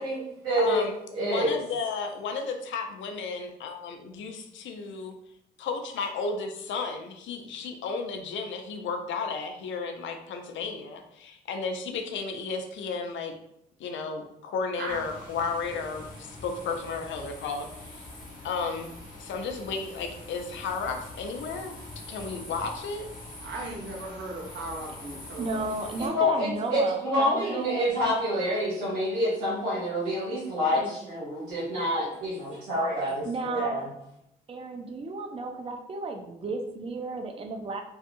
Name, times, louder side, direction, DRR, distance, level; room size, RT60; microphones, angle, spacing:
voice 1, 0.0-0.8 1.1-1.6 26.0-33.9, equal, 90° right, -8 dB, 0.9 m, -27 dB
voice 2, 0.6-5.1 5.6-13.3 13.8-18.0 18.4-21.8 22.1-23.0, left 4 dB, 70° left, 5 dB, 0.5 m, -33 dB
voice 3, 14.7-15.0 23.4-26.2 33.5-33.6, right 2 dB, 65° right, -3 dB, 0.9 m, -38 dB
sound 1, 14.9-26.1, left 1 dB, 45° left, 1.1 m, -44 dB
voice 4, 25.4-27.8 30.5-31.1 33.3-33.8 34.5-37.8, right 3 dB, 30° right, 4 dB, 0.4 m, -33 dB
2.7 x 2.3 x 2.5 m, 0.78 s
supercardioid pair, 45°, 20 cm